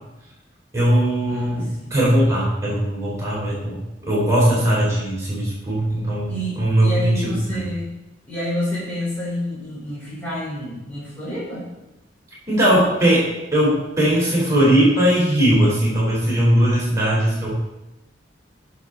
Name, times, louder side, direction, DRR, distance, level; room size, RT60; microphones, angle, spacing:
voice 1, 0.7-7.6 12.5-17.5, right 1 dB, 15° right, -6 dB, 4.0 m, -19 dB
voice 2, 1.2-1.9 6.3-7.9 8.3-11.7, left 1 dB, 10° left, -10 dB, 4.4 m, -29 dB
17.5 x 6.8 x 4.0 m, 0.98 s
head